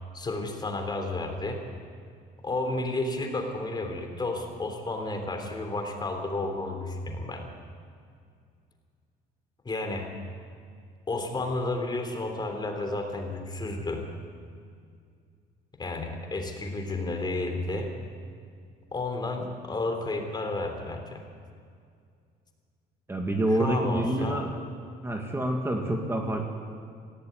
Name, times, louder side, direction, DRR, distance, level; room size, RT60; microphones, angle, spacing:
voice 1, 0.1-1.6 2.4-7.5 9.6-10.1 11.1-14.1 15.8-17.9 18.9-21.2 23.5-24.4, left 2 dB, 25° left, 4 dB, 3.3 m, -32 dB
voice 2, 23.1-24.5 25.0-26.4, right 1 dB, 15° right, 2 dB, 1.9 m, -27 dB
18.0 x 16.0 x 9.5 m, 2.3 s
cardioid pair, 110°, 17 cm